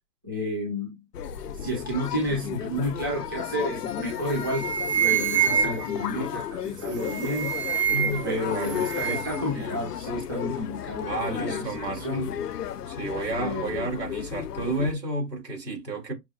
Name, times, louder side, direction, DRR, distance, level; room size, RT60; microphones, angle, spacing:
voice 1, 0.2-1.0 1.6-4.7 4.9-7.6 8.2-12.3 13.4-13.8, equal, 15° right, 0.5 m, -31 dB
sound 1, 1.1-14.9, left 9 dB, 70° left, 0.6 m, -34 dB
sound 2, 3.9-4.1 4.4-6.0 6.9-8.3 8.6-9.4, right 9 dB, 45° right, 0.8 m, -26 dB
voice 2, 7.9-9.8 11.0-12.2 12.9-16.1, right 2 dB, 85° right, 2.5 m, -32 dB
5.9 x 2.2 x 2.4 m
hypercardioid pair, 155°, 48 cm